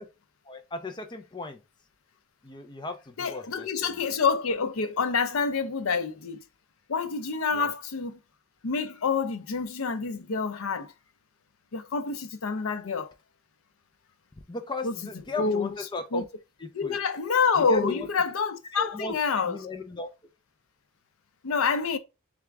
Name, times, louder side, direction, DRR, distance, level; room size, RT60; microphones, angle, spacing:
voice 1, 0.5-1.6 2.4-4.0 7.5-7.7 14.5-16.2 16.6-17.0 17.6-18.1 18.7-20.1, left 3 dB, 20° left, 0.6 m, -36 dB
voice 2, 3.2-6.4 6.9-8.2 8.6-10.9 11.7-13.1 14.8-15.0 15.4-15.8 16.1-16.2 16.7-19.6 21.4-22.0, left 5 dB, 80° left, 0.6 m, -27 dB
3.5 x 3.5 x 3.4 m
head